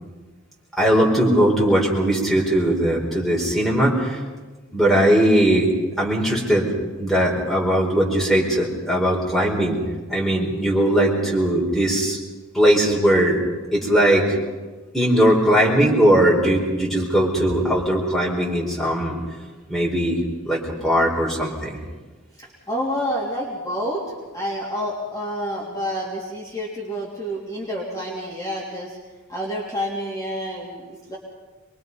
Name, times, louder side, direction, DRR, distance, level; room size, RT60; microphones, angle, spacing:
voice 1, 0.8-4.2 4.7-5.7 6.0-6.7 7.0-9.8 10.1-12.2 12.5-13.4 13.7-14.4 14.9-19.2 19.7-20.2 20.4-21.8, right 1 dB, ahead, -3 dB, 4.7 m, -19 dB
voice 2, 22.4-29.0 29.3-31.2, equal, 15° left, -6 dB, 3.3 m, -29 dB
25.5 x 22.5 x 5.5 m, 1.3 s
head